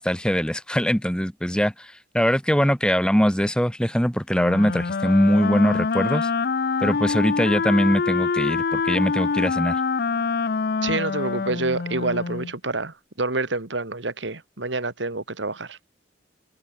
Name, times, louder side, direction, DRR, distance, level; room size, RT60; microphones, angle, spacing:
voice 1, 0.0-6.3 6.8-9.8, equal, 5° left, 2.5 m, -22 dB
Wind instrument woodwind instrument, 4.3-12.5, left 4 dB, 55° left, 0.5 m, -25 dB
voice 2, 10.8-15.8, right 3 dB, 85° right, 2.7 m, -27 dB
head